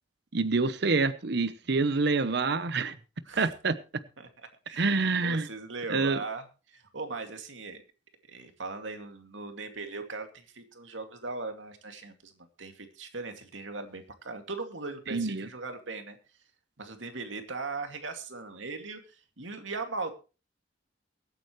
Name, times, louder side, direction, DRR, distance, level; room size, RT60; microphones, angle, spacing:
voice 1, 0.3-2.9 3.4-3.8 4.8-5.5 5.9-6.2 15.1-15.5, right 3 dB, 60° right, 0.9 m, -27 dB
voice 2, 5.2-7.8 8.3-16.2 16.8-20.1, right 3 dB, 80° right, 2.4 m, -39 dB
23.0 x 9.0 x 3.1 m
head